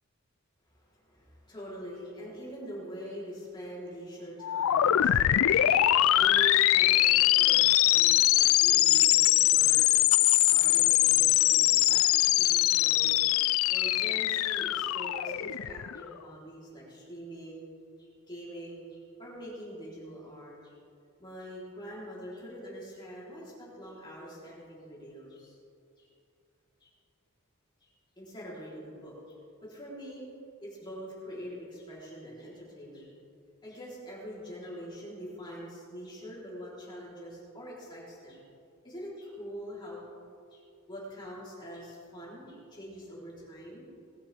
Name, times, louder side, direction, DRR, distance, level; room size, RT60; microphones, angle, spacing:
voice 1, 0.7-10.0 10.5-13.2 13.7-17.6 18.0-20.8 21.2-25.6 26.0-26.1 26.8-26.9 27.8-30.3 30.6-33.1 33.6-38.4 38.8-40.0 40.5-40.6 40.9-43.9, equal, 20° left, -7 dB, 3.6 m, -44 dB
sound 1, 4.4-16.1, left 15 dB, 70° left, 0.3 m, -23 dB
19.5 x 11.5 x 3.5 m, 2.5 s
head